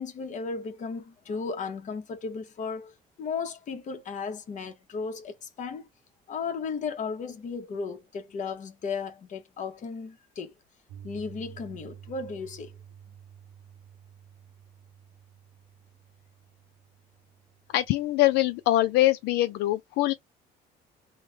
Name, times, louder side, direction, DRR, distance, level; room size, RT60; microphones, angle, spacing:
voice 1, 0.0-5.9 6.3-10.5 11.0-12.7, left 5 dB, 45° left, 0.9 m, -35 dB
Piano, 10.9-19.0, right 9 dB, 80° right, 1.0 m, -51 dB
voice 2, 17.7-20.1, left 15 dB, 80° left, 0.4 m, -23 dB
3.1 x 2.1 x 3.3 m
cardioid pair, 110°, 17 cm